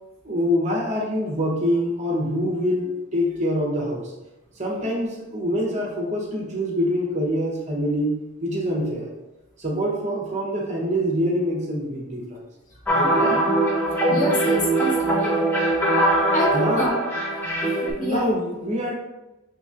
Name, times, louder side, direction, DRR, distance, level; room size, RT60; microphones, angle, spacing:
voice 1, 0.2-4.1 4.6-9.1 9.6-12.4 12.9-13.5 16.5-16.9 18.0-18.9, equal, 35° right, -2 dB, 0.8 m, -25 dB
sound 1, 12.9-17.9, right 1 dB, 10° left, 0.7 m, -21 dB
voice 2, 14.1-15.4 16.3-16.9 17.8-18.3, left 1 dB, 40° left, -4 dB, 1.1 m, -27 dB
6.2 x 2.9 x 2.4 m, 0.99 s
head